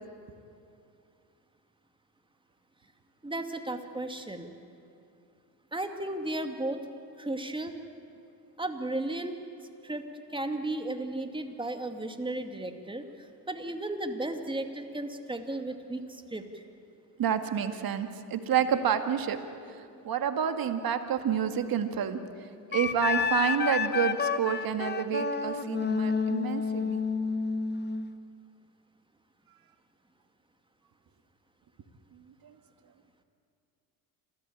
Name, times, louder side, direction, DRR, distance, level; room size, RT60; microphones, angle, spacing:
voice 1, 3.2-4.5 5.7-6.8 7.2-7.7 8.6-9.4 9.8-16.6, right 2 dB, 10° right, 6 dB, 2.4 m, -35 dB
voice 2, 17.2-19.4 20.0-22.2 22.7-27.0, right 8 dB, 45° right, 8 dB, 2.0 m, -29 dB
Wind instrument woodwind instrument, 22.7-28.1, left 5 dB, 20° left, 1.2 m, -29 dB
27.0 x 15.5 x 8.8 m, 2.5 s
hypercardioid pair, 70°, 48 cm